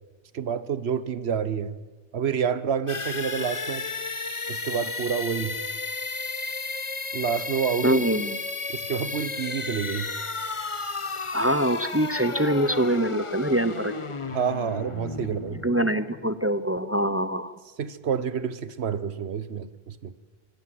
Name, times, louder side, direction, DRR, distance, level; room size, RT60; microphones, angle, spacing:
voice 1, 0.3-1.8 2.1-3.8 4.5-5.6 7.1-8.0 8.7-10.1 14.3-15.6 17.8-20.1, right 7 dB, 75° right, 16 dB, 1.2 m, -28 dB
sound 1, 2.9-16.6, left 3 dB, 30° left, 1.0 m, -33 dB
voice 2, 7.8-8.4 11.3-13.9 15.3-17.5, right 1 dB, 15° right, 14 dB, 0.6 m, -24 dB
24.5 x 17.5 x 7.7 m, 1.3 s
omnidirectional pair, 1.1 m